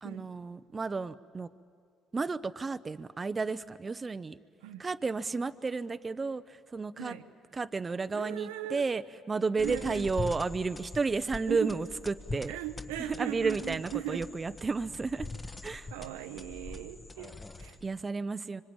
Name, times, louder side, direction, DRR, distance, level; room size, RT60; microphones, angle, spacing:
voice 1, 0.0-1.5 2.1-4.4 4.8-7.1 7.5-9.0 9.3-12.5 13.0-15.3 15.6-15.9 17.8-18.6, right 4 dB, 30° right, 0.8 m, -32 dB
voice 2, 8.1-8.8 9.6-10.1 11.5-11.7 12.5-14.3 15.9-17.8, right 13 dB, 85° right, 1.0 m, -38 dB
sound 1, 9.6-18.0, left 3 dB, 20° left, 1.4 m, -43 dB
26.0 x 24.5 x 8.8 m
supercardioid pair, 65°, 0 cm